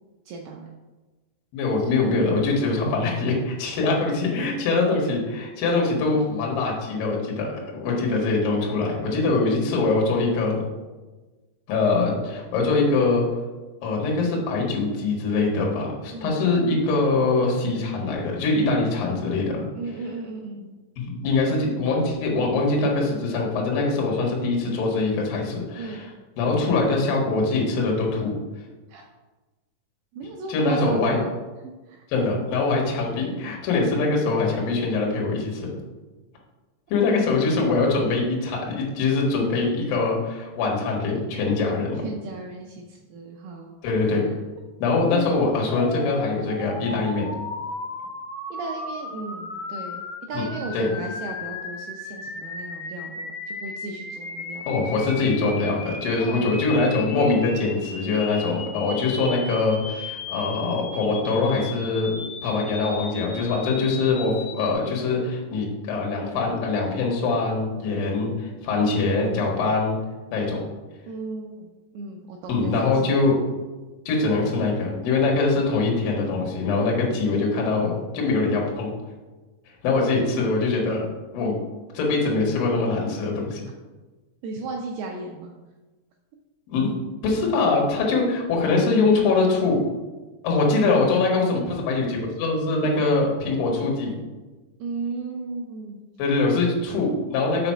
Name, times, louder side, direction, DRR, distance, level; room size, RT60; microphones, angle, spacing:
voice 1, 0.3-0.7 16.1-16.4 19.8-20.8 25.8-26.0 28.9-29.0 30.1-31.3 31.6-32.0 37.1-37.2 42.0-43.8 44.0-44.3 48.5-50.0 50.3-54.9 56.2-56.6 71.1-71.7 71.9-73.2 84.4-85.5 94.8-96.0, right 3 dB, 85° right, 1 dB, 2.2 m, -35 dB
voice 2, 1.5-10.6 11.7-13.2 13.8-19.6 21.0-26.1 26.4-28.3 30.5-31.1 32.1-35.7 36.9-42.0 43.8-44.2 44.8-47.3 50.3-50.5 50.7-50.9 54.7-62.2 62.4-70.0 70.3-70.6 72.5-73.4 74.1-78.9 79.8-81.1 81.3-81.5 81.9-83.6 86.7-86.9 87.2-89.8 90.4-94.2 96.2-97.7, left 3 dB, 60° left, -2 dB, 2.8 m, -23 dB
sound 1, 45.7-64.7, left 4 dB, 80° left, 3.4 m, -36 dB
5.9 x 5.3 x 5.6 m, 1.2 s
omnidirectional pair, 5.3 m